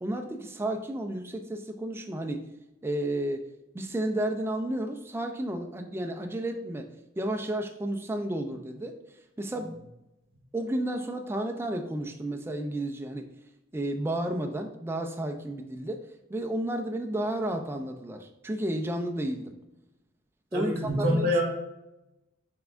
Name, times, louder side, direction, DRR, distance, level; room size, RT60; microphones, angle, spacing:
voice 1, 0.0-2.4 2.8-3.4 3.7-6.9 7.2-9.0 9.4-9.8 10.5-13.3 13.7-19.5 20.5-21.4, right 1 dB, 10° right, 4 dB, 0.3 m, -32 dB
voice 2, 20.5-21.4, equal, 50° right, -2 dB, 1.3 m, -25 dB
5.6 x 3.4 x 2.4 m, 0.93 s
head